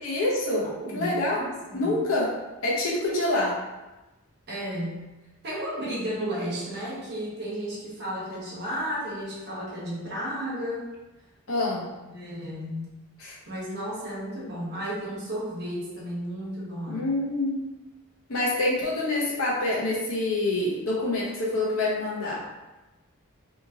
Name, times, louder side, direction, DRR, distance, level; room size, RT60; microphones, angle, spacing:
voice 1, 0.0-0.7 0.9-1.4 1.7-2.3 2.6-3.5 11.5-11.9 13.2-13.4 16.9-17.6 18.3-22.4, left 2 dB, 65° left, -5 dB, 0.8 m, -26 dB
voice 2, 0.8-2.0 4.5-5.1 5.4-10.9 12.1-12.9 13.5-17.1, equal, 50° right, -7 dB, 1.1 m, -33 dB
2.8 x 2.5 x 2.8 m, 1.1 s
head